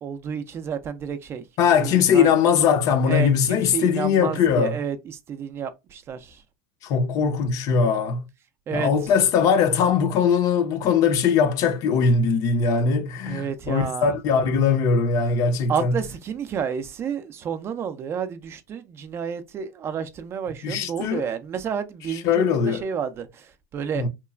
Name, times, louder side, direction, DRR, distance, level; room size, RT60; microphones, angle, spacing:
voice 1, 0.0-1.4 1.8-2.3 3.1-6.4 8.7-8.9 13.3-14.1 15.7-24.0, right 7 dB, 30° right, 0.4 m, -30 dB
voice 2, 1.6-4.8 6.8-8.2 8.7-15.9 20.6-21.3 22.2-22.8 23.9-24.1, left 6 dB, 45° left, 0.6 m, -20 dB
2.9 x 2.3 x 2.2 m
hypercardioid pair, 105°, 8 cm